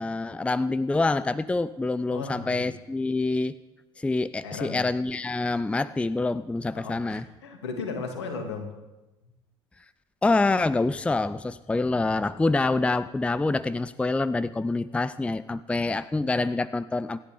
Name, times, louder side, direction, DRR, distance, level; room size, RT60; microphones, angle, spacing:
voice 1, 0.0-3.6 4.0-7.2 10.2-17.2, left 3 dB, 10° left, 17 dB, 0.5 m, -26 dB
voice 2, 2.1-2.7 4.4-4.8 6.7-8.7, left 4 dB, 75° left, 5 dB, 2.4 m, -35 dB
27.0 x 11.5 x 3.7 m, 1.0 s
figure-of-eight pair, 60°, 14 cm